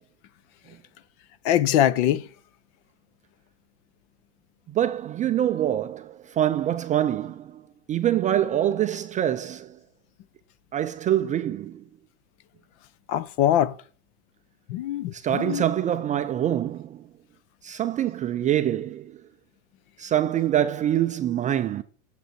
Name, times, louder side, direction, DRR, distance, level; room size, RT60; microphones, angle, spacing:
voice 1, 1.4-2.2 13.1-13.7 14.7-15.6, left 11 dB, 50° left, 1.0 m, -22 dB
voice 2, 4.7-7.6 7.9-9.8 10.7-11.8 15.1-17.0 17.6-19.1 20.0-21.8, right 11 dB, 20° right, 0.4 m, -25 dB
10.0 x 7.5 x 4.3 m
hypercardioid pair, 115°, 42 cm